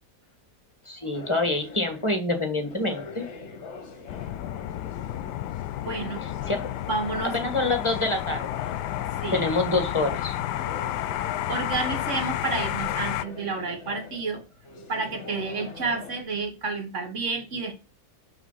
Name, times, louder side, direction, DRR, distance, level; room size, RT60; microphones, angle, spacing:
voice 1, 0.8-3.2 6.2-6.6 7.3-8.5 9.3-10.4, left 2 dB, 20° left, 1.4 m, -26 dB
sound 1, 1.1-16.2, left 5 dB, 45° left, 1.3 m, -43 dB
sound 2, 4.1-13.2, left 13 dB, 80° left, 1.2 m, -31 dB
voice 2, 5.8-6.2 6.9-7.4 9.2-9.5 11.5-14.4 14.9-17.7, right 4 dB, 50° right, 1.6 m, -30 dB
6.0 x 5.4 x 5.6 m
omnidirectional pair, 1.8 m